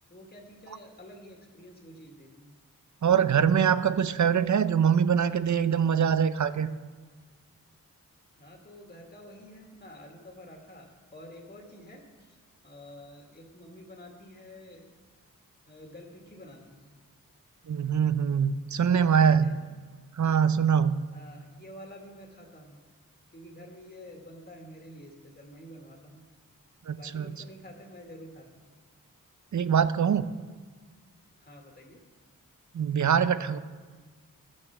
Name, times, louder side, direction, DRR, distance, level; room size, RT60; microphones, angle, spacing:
voice 1, 0.1-2.6 8.4-12.4 12.6-14.9 15.7-16.9 18.9-19.6 21.1-22.8 23.3-26.2 27.0-28.7 31.4-32.0, equal, 30° left, 0 dB, 2.0 m, -49 dB
voice 2, 3.0-6.7 17.7-19.5 20.1-21.0 26.9-27.4 29.5-30.3 32.7-33.6, right 7 dB, 60° right, 13 dB, 0.6 m, -23 dB
14.0 x 6.5 x 5.9 m, 1.4 s
cardioid pair, 65°, 33 cm